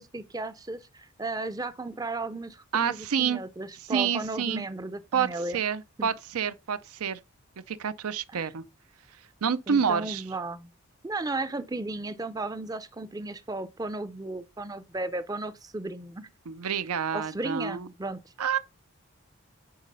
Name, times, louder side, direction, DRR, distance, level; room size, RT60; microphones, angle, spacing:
voice 1, 0.0-5.6 6.0-6.1 8.3-8.5 9.7-10.7 11.0-16.3 17.1-18.3, right 2 dB, 15° right, 0.5 m, -35 dB
voice 2, 2.7-3.4 3.9-4.6 5.1-5.3 5.5-7.2 7.7-8.6 9.4-10.2 16.5-17.9 18.4-18.6, right 7 dB, 85° right, 0.5 m, -28 dB
9.4 x 4.1 x 5.3 m
head